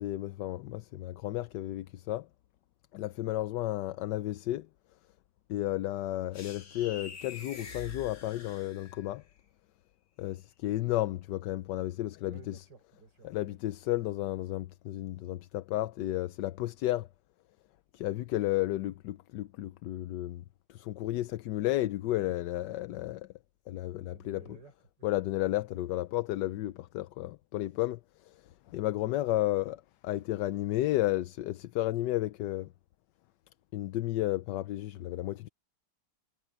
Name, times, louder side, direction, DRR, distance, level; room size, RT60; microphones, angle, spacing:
voice 1, 0.0-2.3 2.9-4.7 5.5-9.2 10.2-12.6 13.2-17.1 17.9-20.4 20.7-23.3 23.7-24.4 25.0-32.7 33.7-35.5, left 15 dB, 75° left, 1.2 m, -33 dB
sound 1, 6.3-9.2, left 5 dB, 50° left, 2.0 m, -46 dB
voice 2, 12.3-13.6 24.1-25.1, right 4 dB, 65° right, 5.7 m, -55 dB
omnidirectional pair, 2.0 m